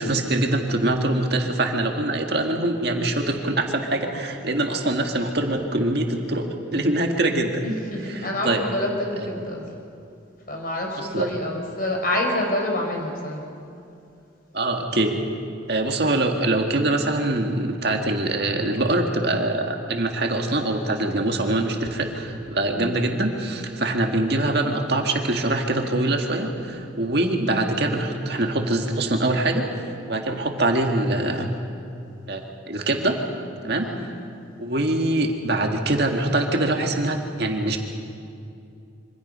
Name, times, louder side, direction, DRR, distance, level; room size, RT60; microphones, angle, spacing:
voice 1, 0.0-7.7 8.0-8.6 11.0-11.3 14.5-15.2 15.7-31.5 32.3-33.2 33.6-33.9 34.6-37.8, right 2 dB, 55° right, 3 dB, 2.0 m, -24 dB
voice 2, 7.6-9.6 10.5-13.4 22.7-22.9 33.8-34.0, left 1 dB, 45° left, 0 dB, 4.8 m, -27 dB
26.5 x 25.0 x 5.6 m, 2.5 s
head